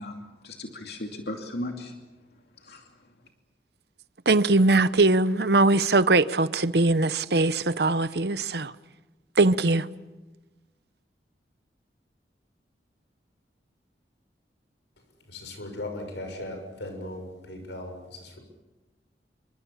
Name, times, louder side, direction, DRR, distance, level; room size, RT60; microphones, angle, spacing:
voice 1, 0.0-1.9 2.7-2.8, left 1 dB, 65° left, 2.6 m, -36 dB
voice 2, 4.3-8.7 9.4-9.9, right 2 dB, 70° right, 0.9 m, -21 dB
voice 3, 15.3-18.4, left 1 dB, 90° left, 6.9 m, -38 dB
28.5 x 24.5 x 7.4 m
head